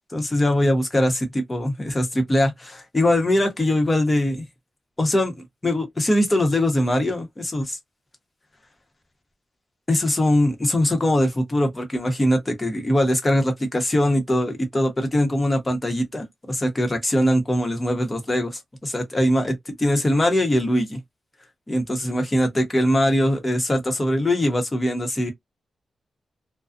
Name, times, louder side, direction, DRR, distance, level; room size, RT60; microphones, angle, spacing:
voice 1, 0.1-4.4 5.0-7.8 9.9-21.0 21.7-25.3, left 1 dB, 20° left, 0.9 m, -22 dB
2.5 x 2.3 x 2.4 m
wide cardioid pair, 115°, 0 cm